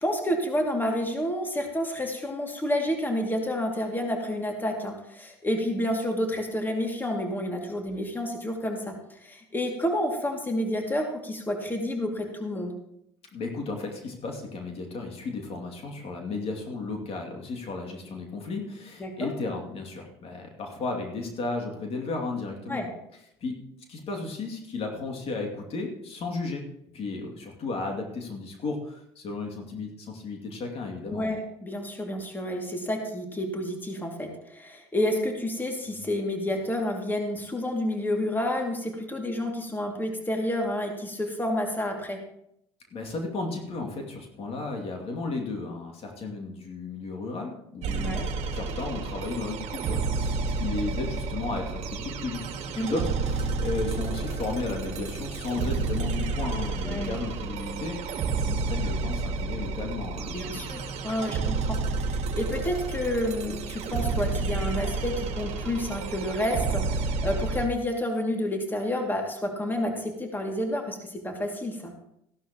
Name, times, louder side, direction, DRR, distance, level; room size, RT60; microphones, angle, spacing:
voice 1, 0.0-12.7 19.0-19.3 22.7-22.9 31.1-42.2 48.0-48.2 52.8-53.0 56.8-57.1 60.3-71.9, left 1 dB, 15° left, 2 dB, 2.4 m, -29 dB
voice 2, 13.3-22.8 23.4-23.6 23.9-26.6 26.9-31.3 42.9-52.4 52.7-60.6, left 3 dB, 45° left, 2 dB, 2.5 m, -34 dB
sound 1, 47.8-67.7, right 4 dB, 55° right, 1.6 m, -30 dB
15.0 x 11.5 x 3.0 m, 0.77 s
hypercardioid pair, 70°, 14 cm